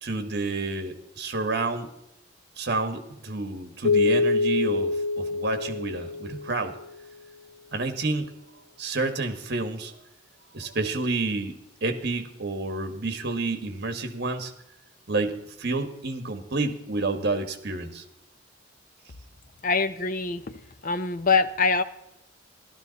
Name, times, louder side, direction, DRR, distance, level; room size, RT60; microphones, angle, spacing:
voice 1, 0.0-1.9 2.6-6.7 7.7-8.3 8.8-9.9 10.5-14.5 15.1-18.0, right 3 dB, 55° right, 8 dB, 1.5 m, -29 dB
Keyboard (musical), 3.8-6.8, left 3 dB, 80° left, 0.6 m, -25 dB
voice 2, 19.6-21.8, left 4 dB, 40° left, 12 dB, 0.6 m, -24 dB
14.0 x 12.5 x 4.1 m, 0.86 s
head